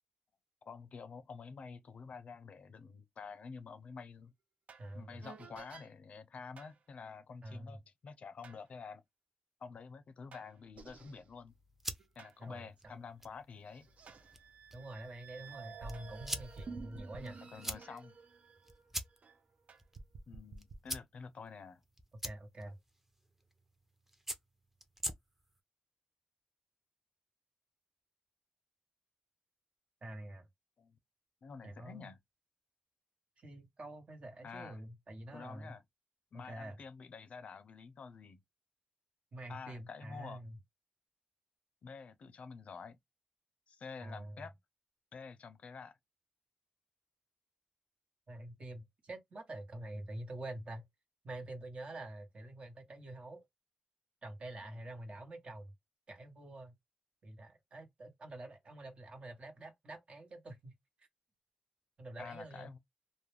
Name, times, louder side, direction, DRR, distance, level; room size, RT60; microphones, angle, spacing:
voice 1, 0.7-4.3 4.9-9.0 9.6-11.5 12.2-13.9 17.4-18.2 20.3-21.8 30.8-31.0 31.4-32.2 34.4-34.8 35.3-35.8 36.3-38.4 39.5-40.4 41.8-43.0 43.7-44.5 45.1-46.0 54.6-54.9 62.2-62.8, left 5 dB, 70° left, 0.4 m, -49 dB
sound 1, 4.7-4.9 5.2-5.9 6.6-6.8 8.4-8.6 10.3-12.4 12.9-13.0 13.7-19.4 19.7-20.8, right 4 dB, 75° right, 0.5 m, -51 dB
voice 2, 4.8-5.2 7.4-7.8 12.4-13.0 14.7-17.4 17.9-18.0 22.2-22.8 30.0-30.5 31.6-32.1 33.4-35.8 36.3-36.8 39.3-40.6 44.0-44.5 48.3-50.8 51.2-53.4 54.2-55.7 56.1-56.7 57.2-60.7 62.0-62.7, right 1 dB, 55° right, 1.0 m, -47 dB
sound 2, 11.5-25.6, equal, 10° right, 0.6 m, -47 dB
2.2 x 2.1 x 3.2 m
cardioid pair, 55°, 2 cm